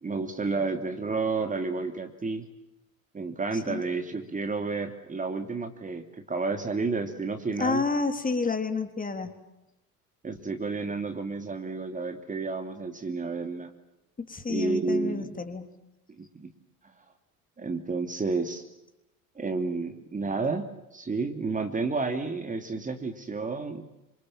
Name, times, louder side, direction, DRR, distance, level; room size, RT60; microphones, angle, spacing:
voice 1, 0.0-2.5 3.1-7.8 10.2-13.7 14.5-15.3 16.2-16.5 17.6-18.6 19.4-20.7 20.9-23.9, right 3 dB, 15° right, 6 dB, 2.8 m, -31 dB
voice 2, 7.6-9.4 14.3-15.7, left 4 dB, 20° left, 8 dB, 3.6 m, -29 dB
28.5 x 26.5 x 7.4 m, 0.91 s
figure-of-eight pair, 70°, 44 cm